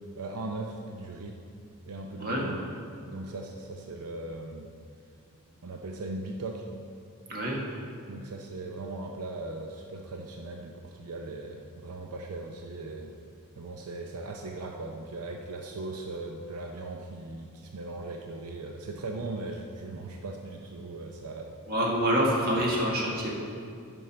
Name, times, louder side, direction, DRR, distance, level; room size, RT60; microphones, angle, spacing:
voice 1, 0.2-1.4 1.9-2.6 3.1-4.7 5.6-6.6 8.1-13.1 13.6-21.6 22.6-22.7, right 2 dB, 85° right, 2 dB, 0.6 m, -38 dB
voice 2, 21.7-23.3, equal, 45° right, -3 dB, 1.7 m, -26 dB
12.0 x 5.4 x 4.3 m, 2.4 s
head